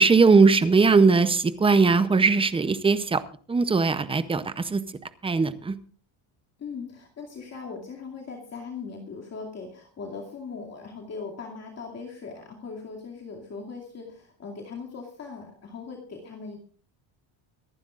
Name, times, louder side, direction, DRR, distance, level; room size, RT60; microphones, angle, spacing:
voice 1, 0.0-3.2 3.5-4.8 5.2-5.7, right 4 dB, 10° right, 13 dB, 0.6 m, -20 dB
voice 2, 6.6-16.6, left 4 dB, 30° left, 0 dB, 2.4 m, -39 dB
25.0 x 11.5 x 2.5 m, 0.43 s
cardioid pair, 150°, 49 cm